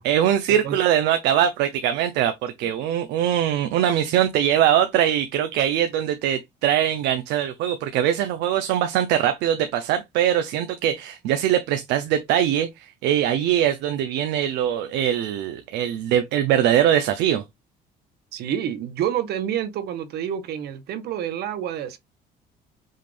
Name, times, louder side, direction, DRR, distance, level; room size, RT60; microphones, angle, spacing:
voice 1, 0.0-12.7 13.0-17.4, right 10 dB, 90° right, 0.6 m, -22 dB
voice 2, 18.3-22.0, right 10 dB, 70° right, 1.0 m, -28 dB
5.6 x 2.5 x 3.4 m
cardioid pair, 110°, 17 cm